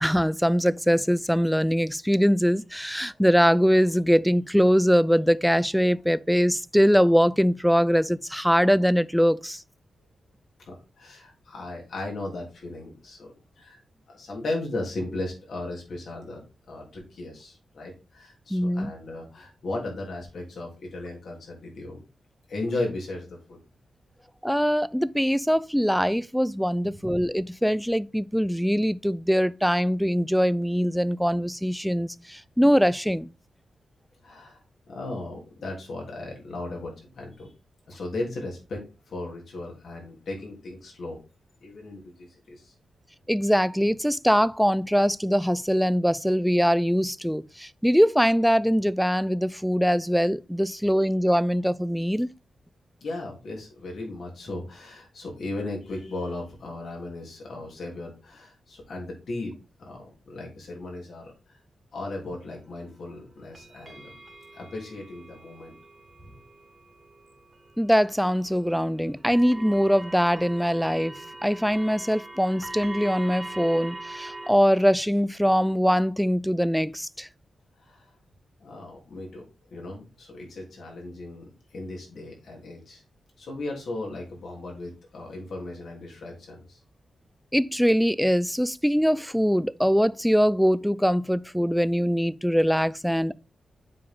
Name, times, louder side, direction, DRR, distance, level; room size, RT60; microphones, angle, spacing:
voice 1, 0.0-9.6 18.5-18.9 24.4-33.3 43.3-52.3 67.8-71.1 71.4-77.3 87.5-93.3, equal, ahead, 0.4 m, -22 dB
voice 2, 10.6-13.8 14.1-16.4 16.7-22.0 22.5-23.6 34.2-37.5 37.9-41.2 41.6-42.7 53.0-59.5 59.8-61.6 61.9-64.1 64.5-65.8 66.2-66.4 77.8-78.1 78.6-81.4 81.7-83.0 83.4-86.8, left 2 dB, 75° left, 3.1 m, -36 dB
sound 1, 62.2-74.5, right 2 dB, 35° right, 1.7 m, -43 dB
7.4 x 4.6 x 3.6 m
cardioid pair, 65°, 0 cm